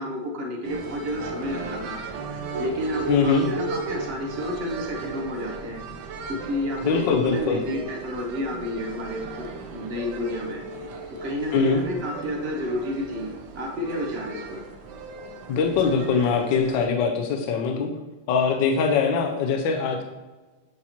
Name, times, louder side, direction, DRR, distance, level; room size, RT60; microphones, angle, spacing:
voice 1, 0.0-2.0 2.6-5.8 6.5-9.5 9.7-10.6 11.2-14.6, equal, 45° right, 0 dB, 0.8 m, -30 dB
sound 1, 0.6-16.9, right 3 dB, 70° right, 1.2 m, -37 dB
voice 2, 3.1-3.5 6.8-7.6 11.5-11.8 15.5-17.9 18.3-20.0, left 5 dB, 75° left, 3 dB, 1.3 m, -22 dB
8.3 x 2.8 x 4.3 m, 1.2 s
omnidirectional pair, 2.1 m